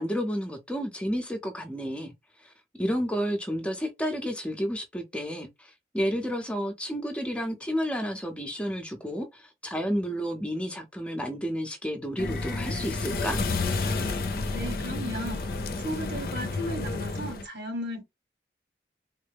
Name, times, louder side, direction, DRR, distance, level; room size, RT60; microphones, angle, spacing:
voice 1, 0.0-2.1 2.4-2.5 2.8-13.4, equal, 5° left, 0.6 m, -31 dB
sound 1, 12.2-17.4, left 3 dB, 55° left, 0.5 m, -30 dB
voice 2, 14.5-15.4 15.8-18.0, equal, 80° right, 1.6 m, -35 dB
3.6 x 2.1 x 3.3 m
head